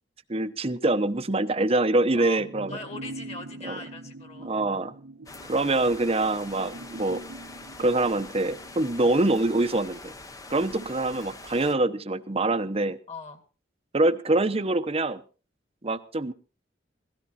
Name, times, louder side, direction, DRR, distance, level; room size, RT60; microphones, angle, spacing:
voice 1, 0.3-2.8 3.6-3.8 4.4-4.9 5.5-7.2 7.8-10.1 10.5-13.0 13.9-15.2 15.8-16.3, right 2 dB, 35° right, 10 dB, 0.9 m, -25 dB
sound 1, 2.4-12.2 12.5-12.6, right 2 dB, 80° right, 1.2 m, -45 dB
voice 2, 2.7-4.5 13.1-13.4, left 3 dB, 35° left, 8 dB, 2.3 m, -41 dB
sound 2, 5.3-11.7, left 3 dB, 20° left, 0.9 m, -44 dB
17.5 x 14.0 x 4.2 m, 0.35 s
head